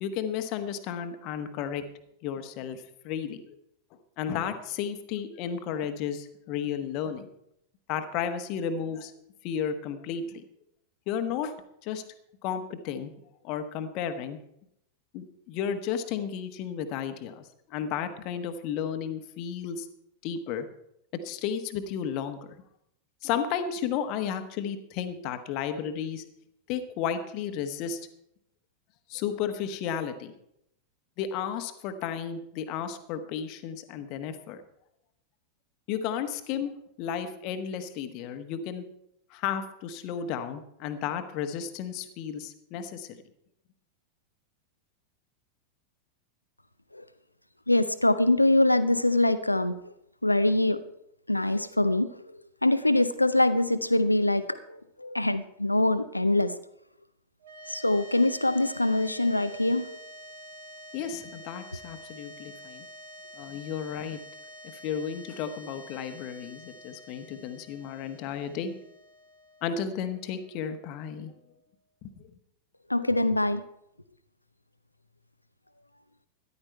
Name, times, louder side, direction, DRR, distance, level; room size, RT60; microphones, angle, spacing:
voice 1, 0.0-1.8 2.2-3.6 4.2-7.3 7.9-9.1 9.4-10.5 11.1-11.5 11.8-12.0 12.4-13.1 13.4-14.4 15.1-19.9 20.2-20.7 21.2-22.4 23.2-26.2 26.7-28.0 29.1-30.3 31.2-34.6 35.9-36.7 37.0-38.8 39.3-43.2 60.9-62.9 63.3-64.2 64.7-68.7 69.6-71.3 72.0-72.2, left 8 dB, 40° left, 9 dB, 1.2 m, -33 dB
voice 2, 47.7-49.9 50.2-50.8 51.3-52.2 52.6-56.5 57.7-60.0 72.9-73.6, left 1 dB, 85° left, 13 dB, 0.6 m, -24 dB
sound 1, 57.4-71.8, equal, 65° right, 1.3 m, -48 dB
13.5 x 11.0 x 4.5 m, 0.78 s
figure-of-eight pair, 90°, 0 cm